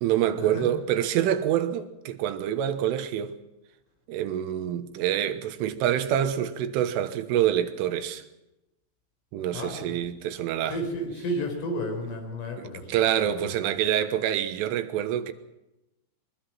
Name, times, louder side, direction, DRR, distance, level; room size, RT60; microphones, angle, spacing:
voice 1, 0.0-3.3 4.1-8.2 9.3-10.8 12.1-12.2 12.6-15.3, right 10 dB, 90° right, 3.8 m, -26 dB
voice 2, 9.5-10.0 10.7-13.5, equal, 90° left, 6.8 m, -33 dB
23.0 x 21.0 x 5.9 m
omnidirectional pair, 5.6 m